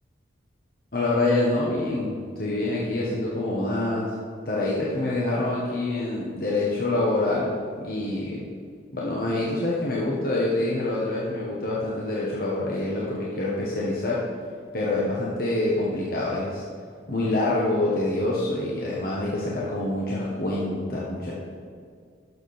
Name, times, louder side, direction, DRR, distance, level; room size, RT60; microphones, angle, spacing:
voice 1, 0.9-4.1 4.4-8.4 8.9-14.2 14.7-16.6 17.1-21.3, left 2 dB, 50° left, -5 dB, 1.4 m, -26 dB
12.0 x 6.9 x 4.3 m, 2.1 s
head